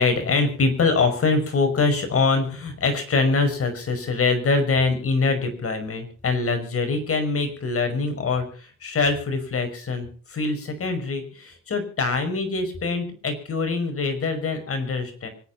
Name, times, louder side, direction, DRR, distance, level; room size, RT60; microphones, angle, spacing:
voice 1, 0.0-15.3, left 4 dB, 50° left, 7 dB, 5.5 m, -24 dB
25.5 x 9.4 x 5.7 m, 0.42 s
cardioid pair, 90°, 30 cm